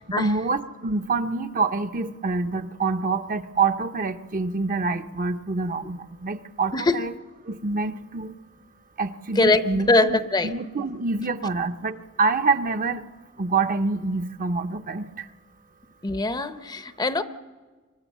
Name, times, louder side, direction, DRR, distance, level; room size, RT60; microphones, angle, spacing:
voice 1, 0.2-7.1 7.5-8.3 9.0-13.0 13.4-15.2, right 4 dB, 40° right, 9 dB, 0.7 m, -26 dB
voice 2, 9.4-10.6 16.0-17.2, left 2 dB, 20° left, 11 dB, 0.7 m, -22 dB
24.5 x 24.0 x 7.4 m, 1.4 s
head